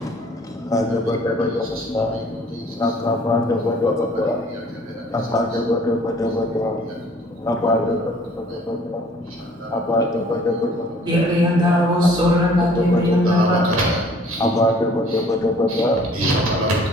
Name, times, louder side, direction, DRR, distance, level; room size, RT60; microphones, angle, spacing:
voice 1, 0.0-11.3 12.0-12.4 12.7-13.7 14.3-16.2, left 1 dB, 15° left, 4 dB, 0.3 m, -23 dB
voice 2, 1.1-1.8 2.1-2.2 2.5-2.9 3.6-3.7 4.5-4.6 4.8-5.0 7.7-7.8 8.5-8.6 9.3-9.9 10.5-10.6 11.3-11.4 12.3-12.4 13.1-14.5 15.1-15.2 15.7-16.9, right 1 dB, 90° right, -2 dB, 1.7 m, -26 dB
voice 3, 11.0-13.6, left 1 dB, 20° right, -5 dB, 1.7 m, -18 dB
7.4 x 6.7 x 2.2 m, 1.2 s
head